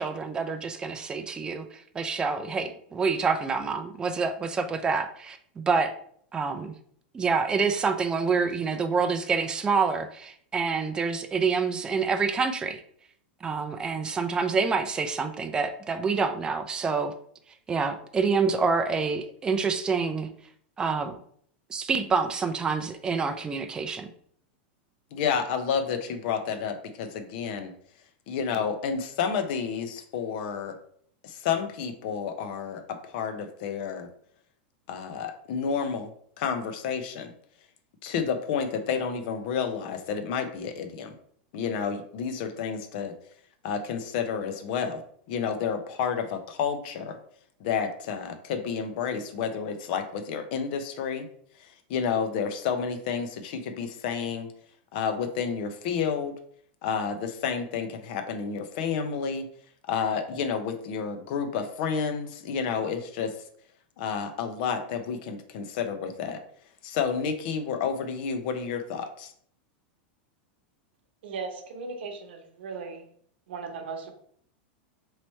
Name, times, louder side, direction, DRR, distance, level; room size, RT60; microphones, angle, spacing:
voice 1, 0.0-5.9 6.3-6.7 7.1-12.8 13.4-17.1 17.7-20.3 20.8-21.2 21.7-24.1, right 5 dB, 15° right, 7 dB, 0.3 m, -27 dB
voice 2, 25.1-27.7 28.3-30.8 31.2-34.1 34.9-37.3 38.0-41.2 41.5-43.1 43.6-45.0 45.3-47.2 47.6-51.3 51.5-54.5 54.9-56.3 56.8-59.5 59.9-63.4 64.0-66.4 66.8-69.3, left 6 dB, 60° left, 8 dB, 0.6 m, -30 dB
voice 3, 71.2-73.1 73.5-74.1, right 4 dB, 80° right, 5 dB, 0.8 m, -37 dB
3.1 x 3.0 x 4.2 m, 0.62 s
supercardioid pair, 135°, 6 cm